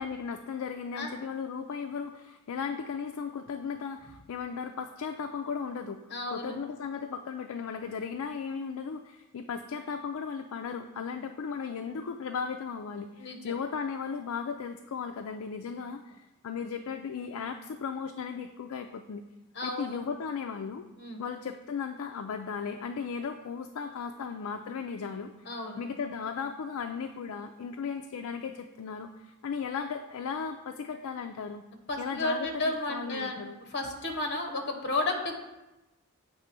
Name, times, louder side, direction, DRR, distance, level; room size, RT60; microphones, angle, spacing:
voice 1, 0.0-6.0 6.3-19.2 19.6-20.9 21.2-31.6 32.0-33.6, left 6 dB, 70° left, 6 dB, 0.4 m, -36 dB
voice 2, 6.1-6.6 13.2-13.5 19.5-20.0 21.0-21.2 25.4-25.8 31.9-33.4 33.7-35.3, left 2 dB, 50° left, 4 dB, 1.0 m, -32 dB
7.9 x 3.4 x 5.9 m, 1.0 s
head